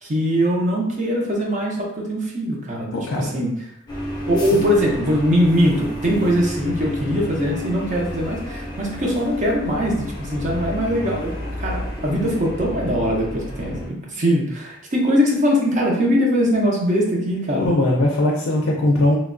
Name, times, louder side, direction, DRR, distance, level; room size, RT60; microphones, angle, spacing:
voice 1, 0.0-3.5 4.3-17.7, equal, 35° right, -2 dB, 0.6 m, -21 dB
voice 2, 2.9-3.3 4.5-4.7 17.6-19.2, left 1 dB, 70° left, -1 dB, 0.4 m, -20 dB
sound 1, 3.9-13.9, equal, 20° left, 0.6 m, -30 dB
3.1 x 2.2 x 2.5 m, 0.75 s
head